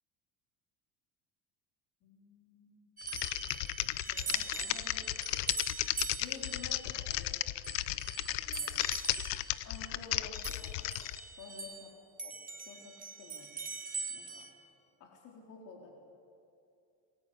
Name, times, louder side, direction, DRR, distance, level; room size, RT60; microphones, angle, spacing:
voice 1, 2.0-2.9 4.1-5.1 6.2-7.4 8.3-8.8 9.6-10.9 11.3-11.9 12.2-12.3 12.6-13.5 14.1-14.5 15.0-15.9, left 4 dB, 50° left, 0 dB, 4.3 m, -51 dB
Typing, 3.0-11.2, left 17 dB, 85° left, 0.8 m, -34 dB
sound 1, 3.0-11.9 12.2-14.5, right 4 dB, 20° right, 2.6 m, -43 dB
27.0 x 21.5 x 8.4 m, 2.5 s
cardioid pair, 170°, 39 cm